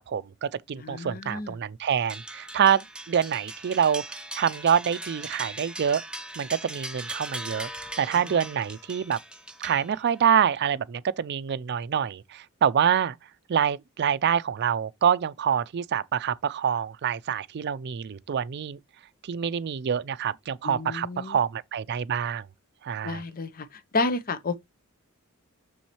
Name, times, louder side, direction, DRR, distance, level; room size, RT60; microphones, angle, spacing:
voice 1, 0.0-6.0 6.4-7.7 8.0-9.2 9.6-13.2 13.5-18.8 19.2-22.5 22.8-23.2, right 8 dB, 55° right, 0.4 m, -26 dB
voice 2, 0.8-1.6 8.1-8.3 20.6-21.4 23.0-24.6, left 3 dB, 45° left, 0.7 m, -31 dB
sound 1, 2.1-10.3, right 1 dB, 5° right, 0.7 m, -39 dB
7.1 x 6.3 x 3.0 m
head